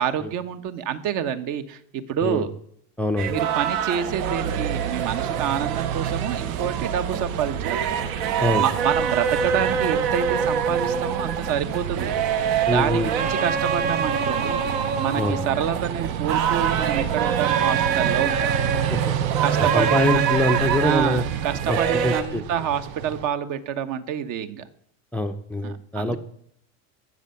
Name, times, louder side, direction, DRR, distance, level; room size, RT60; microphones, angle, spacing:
voice 1, 0.0-2.5 3.3-8.0 8.3-12.1 12.7-14.6 15.0-18.5 19.4-20.2 20.8-24.6 25.6-26.2, right 9 dB, 50° right, 10 dB, 1.2 m, -27 dB
voice 2, 3.0-3.3 8.4-8.7 12.7-13.1 15.2-15.4 18.9-19.0 19.6-21.2 21.7-22.4 25.1-26.2, left 1 dB, 5° left, 9 dB, 0.5 m, -24 dB
sound 1, 3.2-22.2, right 7 dB, 70° right, 1.7 m, -25 dB
sound 2, 4.1-23.3, right 9 dB, 90° right, 0.9 m, -30 dB
13.5 x 7.6 x 7.0 m, 0.70 s
supercardioid pair, 135°, 41 cm